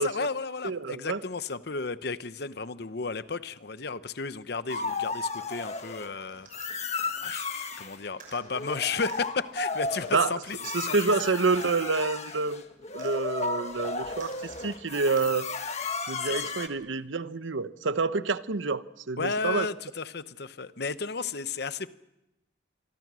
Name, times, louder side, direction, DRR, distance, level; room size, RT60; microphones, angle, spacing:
voice 1, 0.0-6.5 7.2-10.6 10.9-11.0 16.2-16.5 19.2-21.9, left 4 dB, 55° left, 13 dB, 0.9 m, -33 dB
voice 2, 0.6-1.2 10.1-10.3 10.7-12.6 12.9-15.5 16.1-19.7, right 4 dB, 80° right, 14 dB, 0.8 m, -28 dB
sound 1, 4.7-6.1 6.5-8.0 8.4-16.7, left 4 dB, 35° left, 1.6 m, -34 dB
sound 2, 6.1-10.5 11.0-11.8, left 3 dB, 90° left, 5.6 m, -58 dB
sound 3, 6.3-6.9 8.1-8.4 9.1-9.2 10.0-10.1 10.6-10.8 11.6-11.7 13.0-13.1 14.2-14.7 15.2-15.3 16.2-16.3, right 5 dB, 45° right, 6.3 m, -50 dB
26.5 x 22.5 x 6.2 m, 0.92 s
head